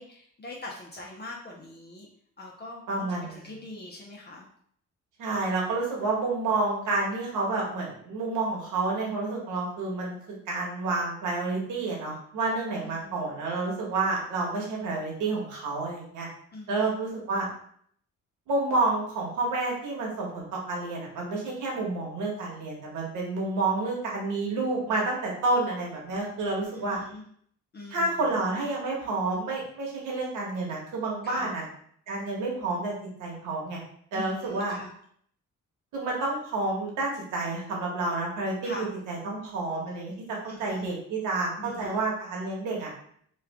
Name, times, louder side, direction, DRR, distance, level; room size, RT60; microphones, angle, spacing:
voice 1, 0.0-2.1 2.4-4.5 12.8-13.2 16.5-17.0 26.7-27.2 27.7-28.4 31.2-31.5 34.1-34.9 38.6-38.9 40.4-40.9 41.6-42.0, left 2 dB, 35° left, -3 dB, 0.7 m, -42 dB
voice 2, 2.9-3.5 5.2-10.1 10.5-16.3 16.7-17.5 18.5-27.0 27.9-31.6 32.1-32.9 33.2-33.8 34.1-34.7 35.9-40.1 40.6-42.9, right 3 dB, 85° right, -2 dB, 1.3 m, -29 dB
3.1 x 2.4 x 3.5 m, 0.63 s
cardioid pair, 90°, 30 cm